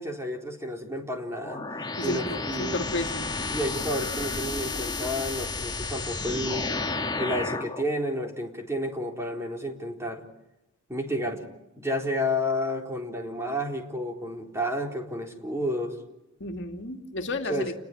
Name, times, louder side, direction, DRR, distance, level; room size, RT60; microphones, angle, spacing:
voice 1, 0.0-1.7 2.0-2.8 3.5-6.7 7.2-10.2 10.9-11.4 11.8-16.0 17.5-17.7, equal, 15° right, 2 dB, 4.0 m, -31 dB
sound 1, 1.4-7.8, left 3 dB, 20° left, 1.7 m, -32 dB
voice 2, 2.0-3.3 16.4-17.7, left 2 dB, 60° left, 5 dB, 2.5 m, -32 dB
29.5 x 21.5 x 9.4 m, 0.90 s
head